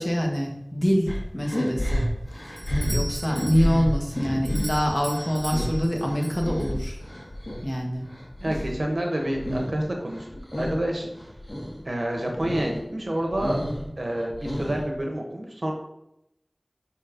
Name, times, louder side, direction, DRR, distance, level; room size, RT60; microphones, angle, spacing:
voice 1, 0.0-2.0 2.5-2.6 2.9-7.0 7.6-8.1, equal, 30° left, 0 dB, 1.4 m, -25 dB
sound 1, 1.1-7.6 8.0-9.8 10.1-10.8 11.1-11.7 12.1-12.7 13.1-15.0, equal, 60° left, 1.6 m, -30 dB
Doorbell, 2.6-7.0, right 1 dB, 65° right, 1.8 m, -40 dB
voice 2, 8.4-11.1 11.8-13.7 14.0-15.7, right 1 dB, 80° right, 1 dB, 1.3 m, -28 dB
5.2 x 4.4 x 5.2 m, 0.84 s
wide cardioid pair, 40°, 0 cm